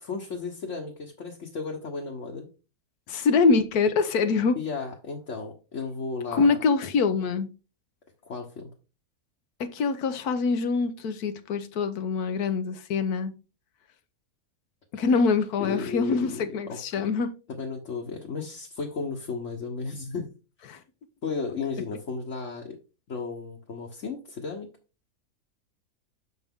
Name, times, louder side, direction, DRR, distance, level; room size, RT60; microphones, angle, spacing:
voice 1, 0.0-2.5 4.5-6.5 8.2-8.7 15.6-16.4 16.7-17.1 17.6-20.3 21.2-22.8 23.1-24.7, left 4 dB, 55° left, 1.4 m, -34 dB
voice 2, 3.1-4.6 6.3-7.5 9.6-13.3 14.9-17.3 20.7-20.8, left 4 dB, 85° left, 1.4 m, -24 dB
6.7 x 6.0 x 3.6 m
omnidirectional pair, 1.6 m